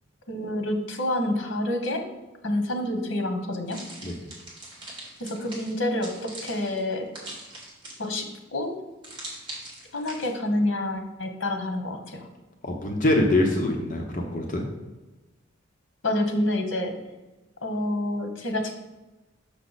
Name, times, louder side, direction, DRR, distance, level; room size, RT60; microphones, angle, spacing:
voice 1, 0.3-2.0 2.4-3.8 5.2-7.1 8.0-8.7 9.9-12.3 16.0-16.9 17.6-18.7, left 1 dB, 80° left, 5 dB, 1.0 m, -28 dB
sound 1, 3.7-8.3 9.0-10.3, right 1 dB, 25° right, 2.3 m, -41 dB
voice 2, 12.6-14.7, left 1 dB, 40° left, 1 dB, 0.9 m, -24 dB
6.5 x 6.1 x 4.0 m, 1.1 s
head